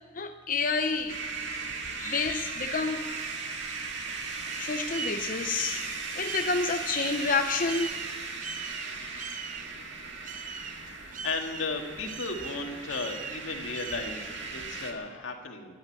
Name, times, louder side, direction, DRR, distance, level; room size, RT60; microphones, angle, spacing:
voice 1, 0.1-1.2 2.0-3.5 4.6-5.9 6.2-7.9, left 4 dB, 45° left, 5 dB, 0.7 m, -29 dB
sound 1, 1.0-14.9, right 6 dB, 40° right, 0.7 m, -43 dB
sound 2, 1.1-14.9, right 4 dB, 65° right, 1.9 m, -37 dB
voice 2, 10.3-10.9 11.2-15.8, left 3 dB, 80° left, 3 dB, 1.9 m, -35 dB
13.5 x 9.9 x 9.8 m, 1.5 s
head